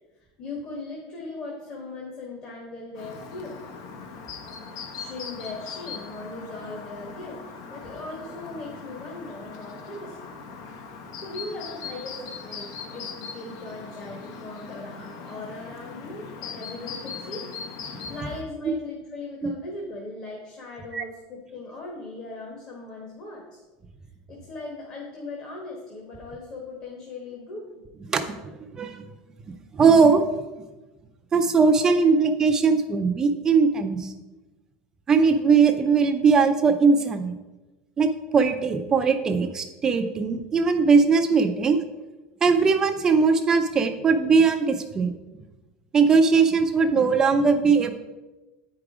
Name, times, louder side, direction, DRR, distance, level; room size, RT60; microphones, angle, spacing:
voice 1, 0.4-3.7 4.7-10.2 11.2-17.4 17.7-23.6 24.3-27.8, left 2 dB, 35° left, -2 dB, 1.3 m, -39 dB
Chirp tweet, 3.0-18.4, left 5 dB, 70° left, 0.9 m, -40 dB
voice 2, 28.1-29.0 29.7-30.2 31.3-34.1 35.1-37.3 38.0-41.8 42.4-45.1 45.9-47.9, right 5 dB, 20° right, 6 dB, 0.4 m, -20 dB
8.7 x 4.8 x 4.9 m, 1.1 s
cardioid pair, 165°, 3 cm